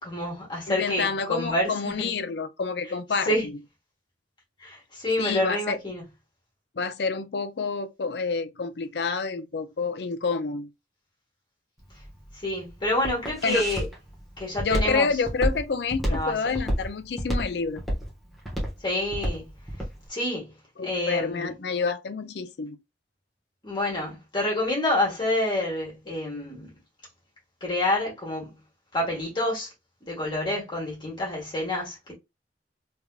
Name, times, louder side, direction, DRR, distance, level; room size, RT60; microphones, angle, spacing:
voice 1, 0.0-2.1 3.3-3.5 4.6-6.0 12.3-13.9 14.4-15.1 16.0-16.4 18.8-19.5 20.1-20.6 20.8-21.5 23.6-26.7 27.6-28.6 28.9-29.7 30.1-32.1, left 1 dB, 25° left, 1.9 m, -28 dB
voice 2, 0.7-3.3 5.2-5.8 6.8-10.7 13.4-13.6 14.6-17.8 20.8-22.8, left 4 dB, 65° left, 0.5 m, -28 dB
Walk footsteps, 11.8-20.0, equal, ahead, 1.3 m, -29 dB
3.5 x 3.4 x 2.3 m
head